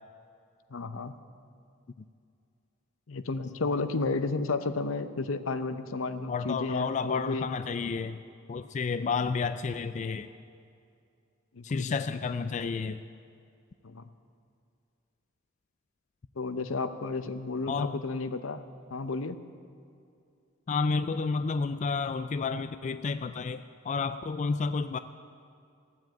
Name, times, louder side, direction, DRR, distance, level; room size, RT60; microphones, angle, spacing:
voice 1, 0.7-1.1 3.1-7.5 9.0-9.1 11.5-11.9 13.8-14.1 16.4-18.6 18.9-19.4, left 3 dB, 80° left, 11 dB, 0.7 m, -32 dB
voice 2, 6.3-8.2 8.5-10.3 11.6-13.0 17.7-18.0 20.7-25.0, left 4 dB, 35° left, 11 dB, 0.3 m, -31 dB
15.5 x 7.7 x 9.2 m, 2.5 s
head